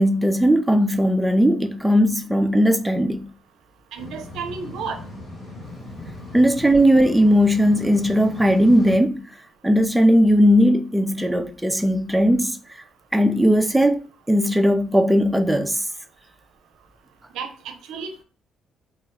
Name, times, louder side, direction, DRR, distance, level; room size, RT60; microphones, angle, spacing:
voice 1, 0.0-3.3 6.3-9.2 9.6-12.6 13.1-14.0 14.3-15.8, equal, 5° right, 0.3 m, -18 dB
voice 2, 3.9-5.0 17.3-18.2, right 5 dB, 90° right, 0.5 m, -32 dB
sound 1, 4.0-9.0, left 2 dB, 50° left, 1.5 m, -38 dB
2.3 x 2.2 x 3.5 m
cardioid pair, 90°, 0 cm